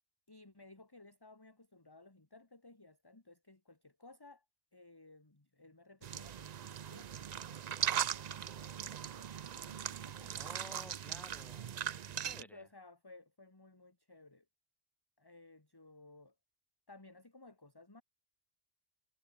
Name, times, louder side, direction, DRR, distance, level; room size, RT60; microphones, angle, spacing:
voice 1, 0.3-4.5 4.7-10.5 12.3-14.5 15.2-16.4 16.9-18.0, left 2 dB, 20° left, 1.9 m, -58 dB
sound 1, 6.0-12.4, right 9 dB, 50° right, 0.5 m, -39 dB
voice 2, 10.4-12.7, equal, ahead, 3.9 m, -54 dB
omnidirectional pair, 1.1 m